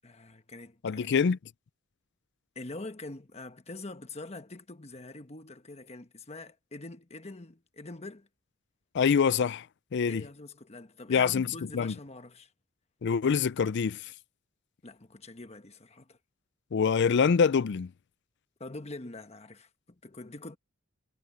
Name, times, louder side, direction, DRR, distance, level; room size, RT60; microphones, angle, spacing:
voice 1, 0.0-1.1 2.5-8.3 10.0-12.5 14.8-16.2 18.6-20.6, left 2 dB, 30° left, 1.2 m, -44 dB
voice 2, 0.8-1.4 8.9-9.7 9.9-10.2 11.1-11.5 11.7-11.9 13.0-14.1 16.7-17.9, left 6 dB, 55° left, 0.4 m, -25 dB
head